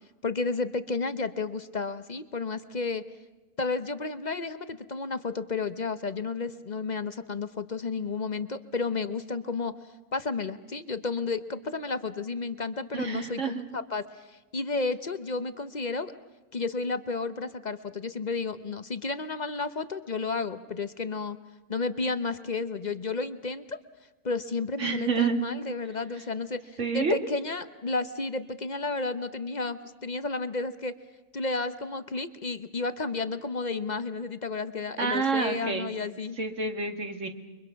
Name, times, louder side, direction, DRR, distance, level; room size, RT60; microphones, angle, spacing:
voice 1, 0.2-3.0 3.6-9.7 10.1-16.1 16.5-21.4 21.7-23.8 24.2-31.0 31.3-36.4, left 3 dB, 35° left, 11 dB, 0.8 m, -32 dB
voice 2, 12.9-13.7 24.8-25.4 26.8-27.2 35.0-35.9 36.4-37.3, right 4 dB, 50° right, 5 dB, 2.3 m, -28 dB
29.5 x 24.0 x 5.8 m, 1.1 s
omnidirectional pair, 1.6 m